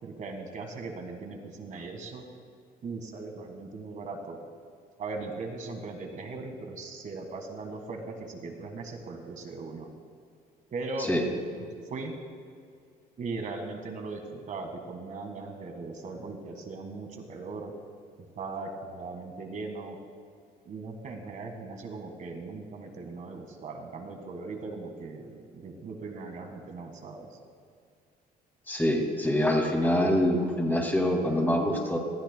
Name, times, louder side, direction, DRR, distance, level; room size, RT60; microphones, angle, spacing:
voice 1, 0.0-2.2 2.8-4.4 5.0-9.9 10.7-11.1 11.9-12.2 13.2-17.7 18.3-20.0 20.6-27.3, right 3 dB, 50° right, 4 dB, 1.7 m, -39 dB
voice 2, 28.7-32.0, left 1 dB, 10° left, 0 dB, 2.3 m, -25 dB
19.0 x 13.5 x 2.2 m, 2.3 s
cardioid pair, 110°, 17 cm